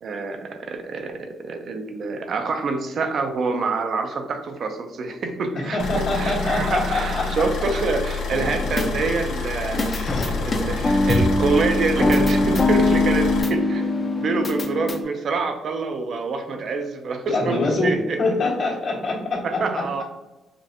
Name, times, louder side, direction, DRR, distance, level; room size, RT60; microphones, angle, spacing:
voice 1, 0.0-9.9 10.2-13.9 14.2-18.2 19.4-20.0, right 4 dB, 55° right, 5 dB, 0.5 m, -26 dB
voice 2, 5.5-7.5 9.7-10.3 17.3-19.8, left 2 dB, 65° left, -4 dB, 1.5 m, -25 dB
sound 1, 5.8-13.4, left 4 dB, 85° left, 0.9 m, -29 dB
sound 2, 8.3-9.3 9.8-15.0, left 2 dB, 35° left, 0.6 m, -22 dB
5.1 x 2.5 x 2.8 m, 1.0 s
cardioid pair, 90°, 0 cm